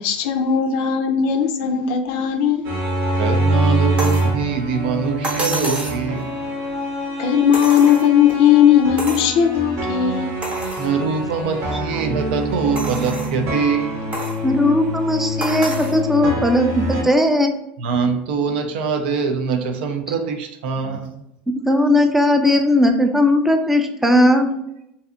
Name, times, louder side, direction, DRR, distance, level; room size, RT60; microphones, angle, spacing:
voice 1, 0.0-2.7 7.2-10.3, left 8 dB, 65° left, 0.4 m, -17 dB
sound 1, 2.7-17.0, right 1 dB, 55° right, 0.8 m, -25 dB
voice 2, 3.2-6.3 10.8-14.2 17.8-21.2, right 5 dB, 80° right, 0.4 m, -23 dB
sound 2, 4.0-4.3 5.2-6.0 7.5-8.3 9.0-9.3 9.8-9.9 10.4-10.9 11.5-11.6 12.8-13.4 14.1-14.4 15.4-16.0 17.2-17.3, right 2 dB, 25° right, 0.8 m, -28 dB
voice 3, 14.4-17.5 21.5-24.5, left 1 dB, 5° right, 0.3 m, -17 dB
2.6 x 2.3 x 2.4 m
supercardioid pair, 120°, 5 cm